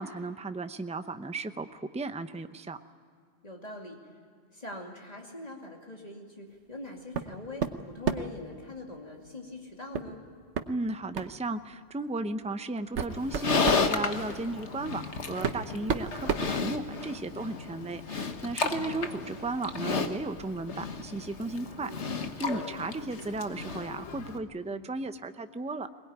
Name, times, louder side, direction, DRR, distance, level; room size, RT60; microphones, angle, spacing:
voice 1, 0.0-2.8 10.7-25.9, right 2 dB, 10° right, 9 dB, 0.6 m, -35 dB
voice 2, 3.4-4.2 4.5-10.2 14.4-14.6 18.6-19.2 21.6-22.1 24.7-24.9, left 2 dB, 35° left, 0 dB, 2.7 m, -43 dB
sound 1, 7.1-7.3 7.6-8.4 9.9-10.1 10.5-10.7 11.1-11.4 12.2-12.3 12.8-13.9 14.9-15.0 15.4-17.2, right 6 dB, 85° right, 1.3 m, -31 dB
Livestock farm animals working animals, 13.1-24.4, left 4 dB, 80° left, 1.6 m, -33 dB
22.0 x 19.5 x 9.5 m, 2.2 s
omnidirectional pair, 1.1 m